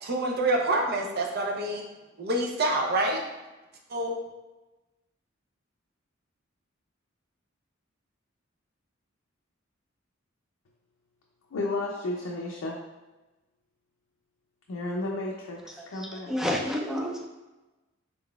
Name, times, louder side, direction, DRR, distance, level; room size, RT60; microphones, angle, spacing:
voice 1, 0.0-1.8 2.2-3.2 3.9-4.2, right 2 dB, 55° right, 1 dB, 0.6 m, -27 dB
voice 2, 11.5-12.8 14.7-16.3, left 2 dB, 80° left, -2 dB, 0.4 m, -33 dB
voice 3, 16.0-17.3, left 1 dB, 5° right, 0 dB, 0.4 m, -30 dB
3.8 x 3.7 x 2.3 m, 1.1 s
head